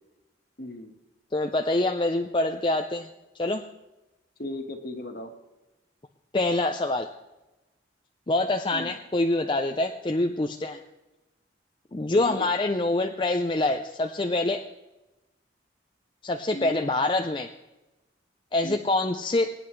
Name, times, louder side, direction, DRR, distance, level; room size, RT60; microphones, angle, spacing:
voice 1, 0.6-0.9 4.4-5.3 8.7-8.9 12.2-12.5 16.5-16.9 18.6-18.8, left 1 dB, 50° left, 5 dB, 1.5 m, -36 dB
voice 2, 1.3-3.1 3.4-3.6 6.3-7.1 8.3-10.8 11.9-14.6 16.2-17.5 18.5-19.5, left 2 dB, 25° left, 5 dB, 0.5 m, -25 dB
23.0 x 9.8 x 3.2 m, 1.0 s
head